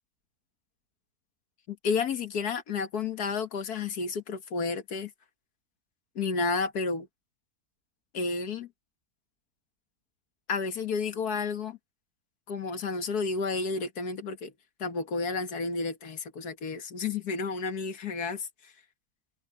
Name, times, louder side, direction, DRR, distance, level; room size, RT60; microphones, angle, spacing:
voice 1, 1.7-5.1 6.2-7.1 8.1-8.7 10.5-11.8 12.5-14.5 14.8-18.7, left 4 dB, 85° left, 2.0 m, -31 dB
omnidirectional pair, 1.6 m